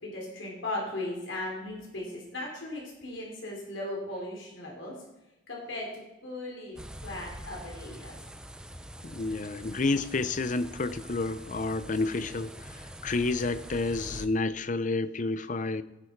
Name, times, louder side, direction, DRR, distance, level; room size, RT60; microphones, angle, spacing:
voice 1, 0.0-5.0 5.5-5.9 6.2-6.8 7.0-8.2, left 1 dB, 85° left, -2 dB, 3.8 m, -37 dB
sound 1, 6.8-14.3, right 1 dB, 5° right, 0.6 m, -44 dB
voice 2, 9.0-15.8, left 3 dB, 40° left, 14 dB, 0.6 m, -30 dB
17.0 x 8.3 x 4.7 m, 0.99 s
head